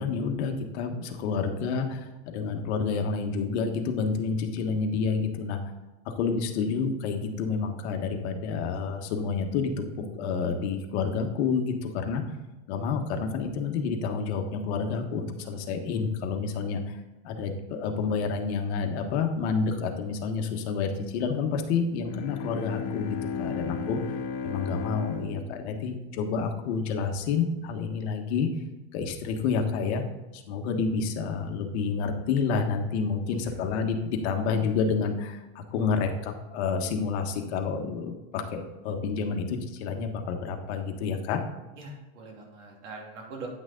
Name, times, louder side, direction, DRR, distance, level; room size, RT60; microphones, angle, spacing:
voice 1, 0.0-5.6 6.2-12.2 12.7-16.9 17.2-24.2 24.4-28.5 28.9-30.0 30.3-41.4, left 5 dB, 65° left, 4 dB, 1.4 m, -29 dB
Bowed string instrument, 22.0-26.8, left 6 dB, 40° left, 0.9 m, -35 dB
voice 2, 41.8-43.5, right 3 dB, 75° right, -1 dB, 3.0 m, -43 dB
9.6 x 6.2 x 3.8 m, 1.1 s
supercardioid pair, 150°, 35 cm